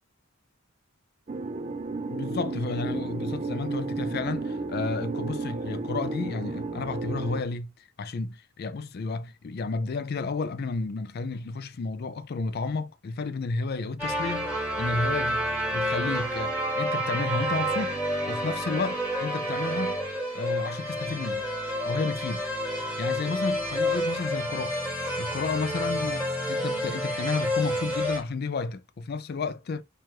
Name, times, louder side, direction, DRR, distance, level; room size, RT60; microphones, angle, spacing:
sound 1, 1.3-7.4, right 3 dB, 30° right, 0.4 m, -33 dB
voice 1, 2.1-7.7 8.0-15.5 15.7-18.0 18.3-20.0 20.3-21.5 21.8-22.4 22.8-24.8 25.2-29.8, left 4 dB, 45° left, 0.4 m, -32 dB
sound 2, 14.0-28.2, equal, 5° right, 1.5 m, -29 dB
4.6 x 2.4 x 4.5 m
head